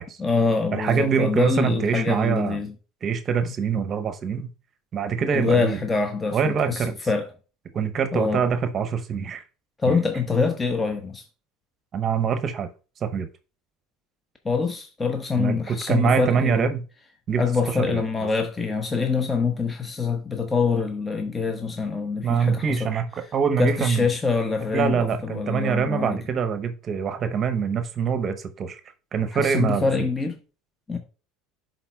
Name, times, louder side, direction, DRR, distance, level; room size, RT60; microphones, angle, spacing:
voice 1, 0.2-2.7 5.3-7.3 8.1-8.4 9.8-11.2 14.4-16.7 17.4-22.9 23.6-26.2 29.3-30.4 30.9-31.0, left 4 dB, 20° left, 0.9 m, -25 dB
voice 2, 0.7-2.6 3.0-4.5 4.9-5.8 6.3-6.9 7.7-9.4 11.9-12.7 13.0-13.3 15.3-16.8 17.3-18.0 22.2-24.1 24.7-28.8 29.1-30.1, right 6 dB, 40° right, 0.8 m, -24 dB
11.0 x 4.0 x 2.3 m
hypercardioid pair, 75°, 0 cm